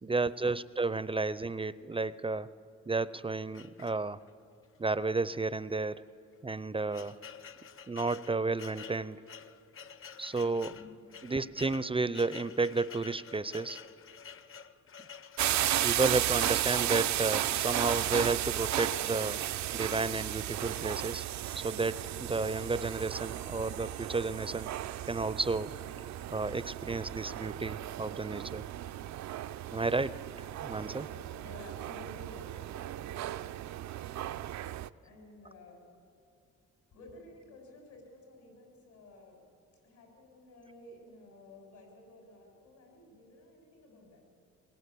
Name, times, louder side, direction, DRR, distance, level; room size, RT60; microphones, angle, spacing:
voice 1, 0.0-2.5 2.9-4.2 4.8-6.0 6.4-7.2 7.9-9.2 10.2-10.7 11.2-13.8 15.8-19.4 19.7-21.3 21.6-24.7 25.1-25.7 26.3-28.6 29.7-30.2 30.6-31.0, right 3 dB, 20° right, 16 dB, 0.6 m, -32 dB
sound 1, 3.5-4.4 5.1-5.3 5.5-5.6 6.3-15.7, left 7 dB, 45° left, 1.0 m, -49 dB
voice 2, 10.5-11.6 30.8-32.5 35.0-35.8 36.9-39.4 39.8-44.3, left 1 dB, 75° left, 1 dB, 7.5 m, -53 dB
sound 2, 15.4-34.9, right 13 dB, 65° right, 0.6 m, -34 dB
22.5 x 21.5 x 8.4 m, 2.6 s
cardioid pair, 90°, 30 cm